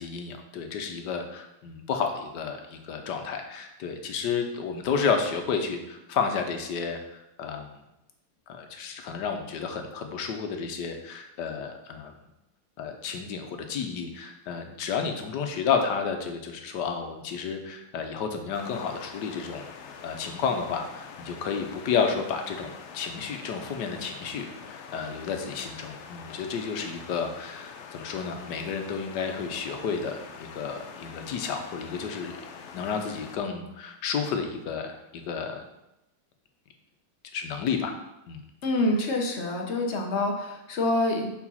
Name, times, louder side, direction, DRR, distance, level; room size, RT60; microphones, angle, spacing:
voice 1, 0.0-7.7 8.5-12.1 12.8-19.6 20.0-32.4 32.7-35.6 37.3-37.9 38.3-38.4, left 6 dB, 85° left, 5 dB, 1.5 m, -31 dB
sound 1, 18.5-33.4, left 6 dB, 70° left, 0.6 m, -45 dB
voice 2, 38.6-41.3, left 1 dB, 50° left, 2 dB, 1.1 m, -26 dB
5.0 x 4.9 x 5.5 m, 0.90 s
omnidirectional pair, 1.8 m